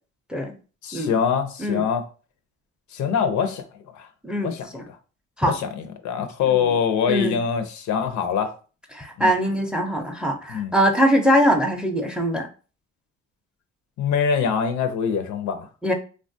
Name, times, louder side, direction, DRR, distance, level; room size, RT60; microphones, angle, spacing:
voice 1, 0.8-2.0 2.9-3.6 3.9-4.1 4.4-5.0 5.5-8.5 9.2-9.3 10.5-10.7 14.0-15.7, left 7 dB, 70° left, 0.5 m, -24 dB
voice 2, 4.2-4.9 5.4-5.5 6.5-6.6 7.1-7.3 8.9-12.5 15.8-15.9, equal, 5° right, 0.4 m, -22 dB
3.1 x 2.3 x 2.6 m
cardioid pair, 90°, 30 cm